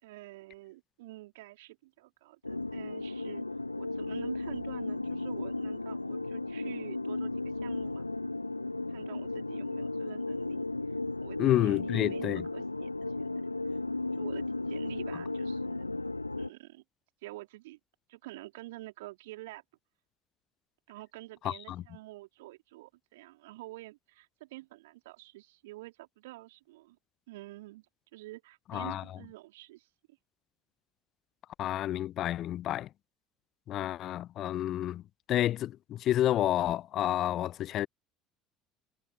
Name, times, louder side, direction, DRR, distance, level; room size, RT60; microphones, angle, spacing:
voice 1, 0.0-3.4 3.8-8.1 8.9-10.6 11.2-13.3 13.7-13.8 14.1-15.9 16.4-16.8 17.2-17.8 18.1-19.6 20.9-27.0 27.3-27.9 28.1-29.9, right 19 dB, 65° right, 3.8 m, -48 dB
sound 1, 2.4-16.5, left 2 dB, 85° left, 1.3 m, -35 dB
voice 2, 11.4-12.4 21.4-21.8 28.7-29.0 31.6-32.9 33.7-35.0 35.3-37.9, left 12 dB, 45° left, 0.7 m, -29 dB
figure-of-eight pair, 65°, 0 cm